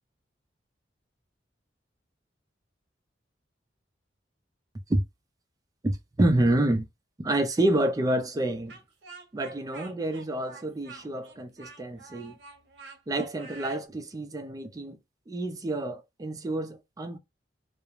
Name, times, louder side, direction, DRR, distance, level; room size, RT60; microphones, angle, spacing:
voice 1, 5.8-6.9 7.2-8.8 9.3-12.4 13.1-15.0 15.3-17.2, right 1 dB, 20° right, 0.3 m, -28 dB
Speech, 8.7-13.8, right 4 dB, 65° right, 0.7 m, -48 dB
2.3 x 2.0 x 3.0 m
head